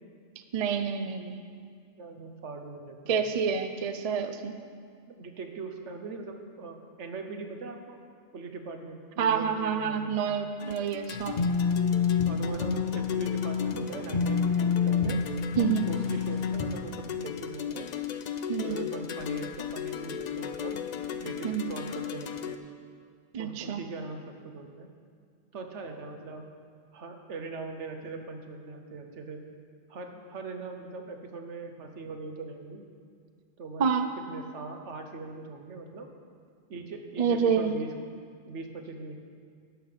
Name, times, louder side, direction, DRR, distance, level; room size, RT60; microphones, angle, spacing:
voice 1, 0.5-1.4 3.1-4.6 9.2-11.4 15.6-15.9 18.5-18.8 21.4-21.7 23.3-23.8 33.8-34.1 37.2-37.8, right 6 dB, 50° right, 8 dB, 0.4 m, -28 dB
voice 2, 2.0-3.2 5.1-8.0 8.3-10.2 12.3-15.2 15.9-17.9 18.6-20.8 21.1-22.6 23.4-24.9 25.5-26.4 26.9-29.4 29.9-32.8 33.6-33.8 34.2-36.1 36.7-37.9 38.4-39.2, right 3 dB, 70° right, 5 dB, 1.2 m, -41 dB
I'm so plucked, 10.6-22.6, left 8 dB, 85° left, 0.3 m, -37 dB
sound 1, 11.1-16.9, left 6 dB, 45° left, 0.7 m, -27 dB
11.5 x 6.8 x 5.7 m, 2.1 s
omnidirectional pair, 1.3 m